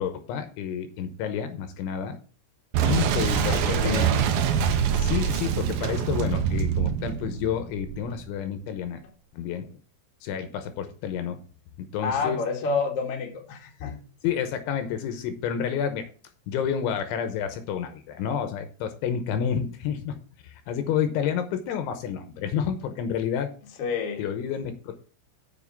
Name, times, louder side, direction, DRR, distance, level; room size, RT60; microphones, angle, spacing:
voice 1, 0.0-2.2 2.8-4.1 4.9-9.0 9.3-9.8 10.2-11.4 11.8-12.4 14.2-16.1 16.5-20.2 20.4-23.5 24.2-25.0, left 8 dB, 80° left, 3.2 m, -29 dB
Boom, 2.7-8.3, right 8 dB, 85° right, 2.0 m, -25 dB
voice 2, 3.3-4.3 12.0-14.0 23.8-24.2, left 4 dB, 50° left, 2.0 m, -29 dB
7.4 x 6.7 x 6.9 m
omnidirectional pair, 5.7 m